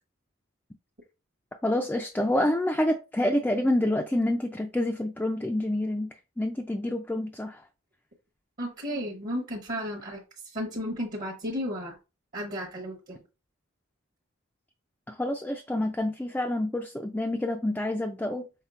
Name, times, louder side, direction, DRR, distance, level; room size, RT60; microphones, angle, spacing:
voice 1, 1.6-7.6 15.1-18.4, left 1 dB, 10° left, 0.3 m, -28 dB
voice 2, 8.6-10.2 10.5-12.0 12.3-13.2, equal, 45° right, 0.9 m, -33 dB
5.7 x 3.6 x 2.4 m
head